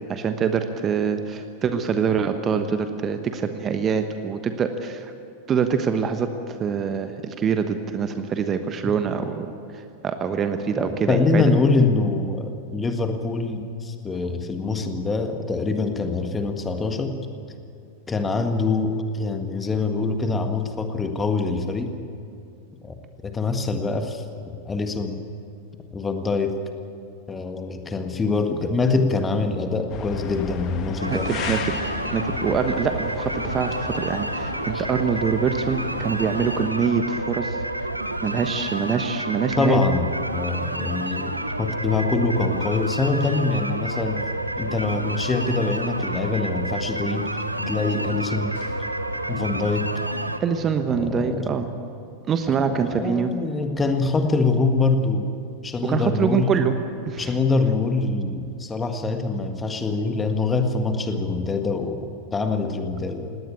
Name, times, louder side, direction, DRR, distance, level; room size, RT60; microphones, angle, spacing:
voice 1, 0.1-5.1 5.5-6.3 6.6-11.4 31.1-31.6 31.8-37.6 38.2-39.8 50.4-51.7 52.3-53.3 55.8-56.7 57.1-57.3, right 6 dB, 25° right, 8 dB, 1.2 m, -25 dB
voice 2, 10.8-17.2 18.1-21.9 22.8-23.0 23.2-25.2 25.9-26.6 27.3-31.3 34.7-34.8 39.6-41.3 41.6-44.2 44.6-48.6 49.3-50.0 50.9-51.5 52.5-55.3 55.6-56.5 57.2-63.4, left 3 dB, 15° left, 6 dB, 1.7 m, -24 dB
sound 1, 29.9-36.7, left 7 dB, 35° left, 1.5 m, -35 dB
sound 2, 31.0-50.4, right 1 dB, 85° right, 0.9 m, -29 dB
sound 3, 48.5-53.3, right 1 dB, 60° left, 6.0 m, -51 dB
18.5 x 18.0 x 8.7 m, 2.5 s
figure-of-eight pair, 90°, 0 cm